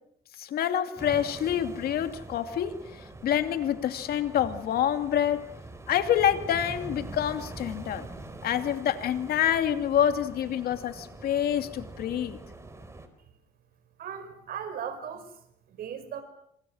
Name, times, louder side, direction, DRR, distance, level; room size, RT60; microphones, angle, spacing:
voice 1, 0.4-2.7 3.2-5.5 5.9-8.1 8.4-12.4, left 10 dB, 65° left, 8 dB, 2.7 m, -27 dB
Mar escollera frente ola, 1.0-13.1, right 2 dB, 15° right, 4.5 m, -44 dB
voice 2, 14.0-15.4 15.7-16.2, right 8 dB, 60° right, 10 dB, 5.4 m, -37 dB
28.0 x 26.5 x 6.5 m, 0.74 s
cardioid pair, 110°, 17 cm